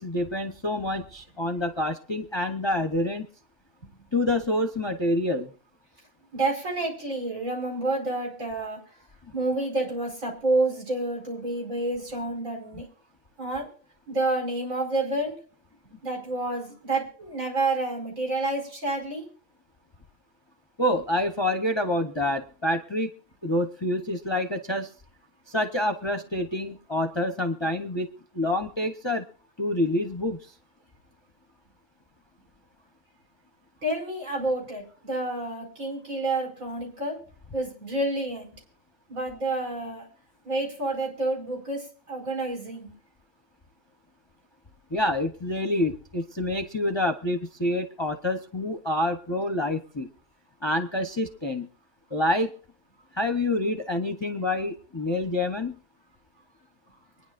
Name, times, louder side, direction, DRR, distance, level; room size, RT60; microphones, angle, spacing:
voice 1, 0.0-3.3 4.1-5.5 20.8-23.1 23.4-24.9 25.5-28.1 28.3-29.3 29.6-30.4 44.9-50.1 50.6-51.7 52.1-52.5 53.1-55.8, left 1 dB, 25° left, 6 dB, 0.7 m, -27 dB
voice 2, 6.3-8.8 9.3-12.9 13.4-13.7 14.1-15.4 16.0-19.3 33.8-37.2 37.5-38.5 39.1-40.1 40.4-42.9, right 2 dB, 70° right, -1 dB, 5.4 m, -29 dB
24.0 x 10.0 x 2.5 m, 0.43 s
omnidirectional pair, 1.4 m